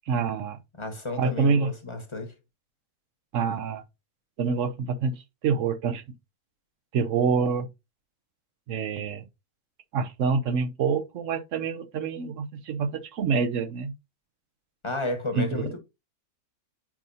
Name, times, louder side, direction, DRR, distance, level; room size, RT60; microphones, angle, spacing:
voice 1, 0.1-0.6 1.2-1.7 3.3-3.8 4.4-5.1 5.4-6.0 6.9-7.7 8.7-9.2 9.9-13.9 15.4-15.7, right 5 dB, 60° right, 1.0 m, -26 dB
voice 2, 0.8-2.3 14.8-15.8, left 2 dB, 20° left, 1.0 m, -32 dB
7.4 x 5.3 x 2.6 m
omnidirectional pair, 1.6 m